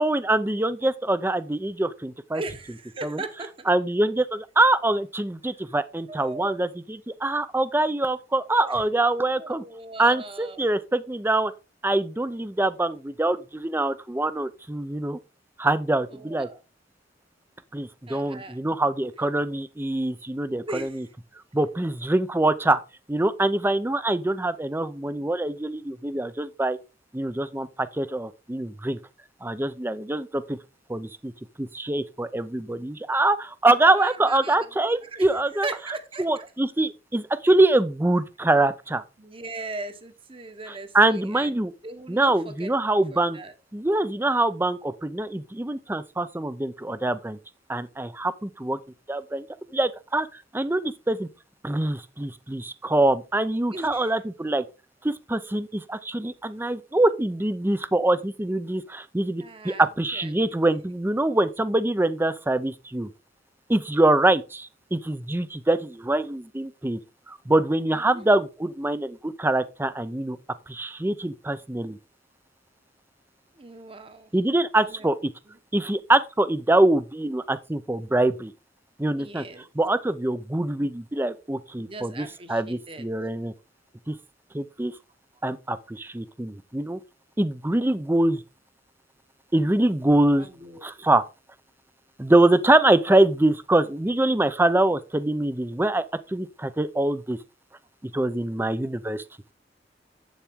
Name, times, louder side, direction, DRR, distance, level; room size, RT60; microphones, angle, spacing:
voice 1, 0.0-2.4 3.0-3.2 3.7-9.6 10.0-11.5 11.8-15.2 15.6-16.5 17.7-21.0 21.5-22.8 23.1-26.8 27.1-29.0 29.4-30.6 30.9-31.3 31.6-35.7 36.2-39.0 40.9-41.7 42.1-43.4 43.7-47.4 47.7-48.8 49.1-49.5 49.7-51.3 51.6-54.6 55.0-63.1 63.7-67.0 67.3-70.4 70.7-72.0 74.3-75.3 75.7-78.5 79.0-79.4 79.8-83.5 84.1-84.2 84.5-84.9 85.4-87.0 87.4-88.4 89.5-90.5 90.8-91.2 92.2-97.4 98.0-99.2, right 2 dB, 15° right, 0.6 m, -24 dB
voice 2, 2.3-3.7 6.1-6.7 8.5-8.8 9.4-10.6 16.1-16.6 18.1-18.6 20.6-21.1 33.9-34.7 35.0-35.3 35.6-36.5 39.2-42.7 43.1-43.5 53.7-54.1 59.4-59.8 60.1-60.8 67.9-68.3 73.5-74.3 74.8-75.1 75.5-75.6 79.2-79.7 81.8-83.1 90.4-91.1, right 2 dB, 30° right, 1.2 m, -39 dB
8.2 x 7.2 x 3.6 m
head